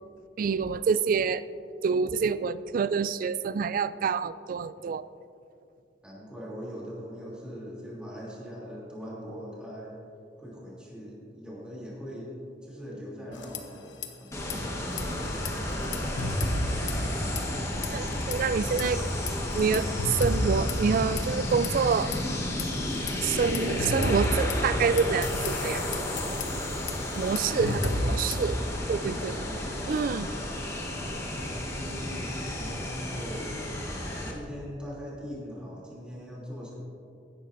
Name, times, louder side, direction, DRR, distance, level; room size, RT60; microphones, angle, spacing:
voice 1, 0.4-1.4 1.8-5.1 17.9-19.0 19.5-22.1 23.2-25.8 27.2-28.6 28.9-29.3 29.9-30.3, right 5 dB, 50° right, 15 dB, 0.3 m, -27 dB
voice 2, 6.0-10.0 10.4-12.4 12.6-14.4 15.7-15.8 17.9-18.0 18.4-18.5 27.2-28.2 29.0-29.7 31.2-36.8, equal, 5° right, -6 dB, 2.9 m, -41 dB
sound 1, 13.3-14.1 14.3-14.5 14.9-17.6 17.8-18.4 18.8-22.2 22.6-28.6, left 1 dB, 90° left, 1.0 m, -32 dB
sound 2, 14.3-34.3, left 1 dB, 15° left, 1.4 m, -32 dB
15.5 x 11.5 x 2.6 m, 2.5 s
head